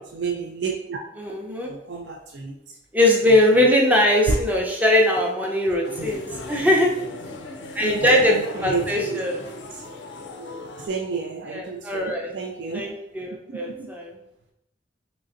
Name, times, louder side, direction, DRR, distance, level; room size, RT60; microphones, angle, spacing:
voice 1, 0.1-1.0 1.6-2.6 4.3-4.4 7.8-9.2 10.9-12.9 13.5-13.9, right 4 dB, 70° right, 2 dB, 0.4 m, -30 dB
voice 2, 1.2-1.7 2.9-6.9 7.7-8.4 8.6-9.5 11.5-12.3 12.7-14.1, left 1 dB, 10° right, -1 dB, 0.6 m, -21 dB
sound 1, 5.8-10.9, left 2 dB, 85° left, 0.4 m, -37 dB
3.8 x 3.3 x 2.5 m, 0.82 s
head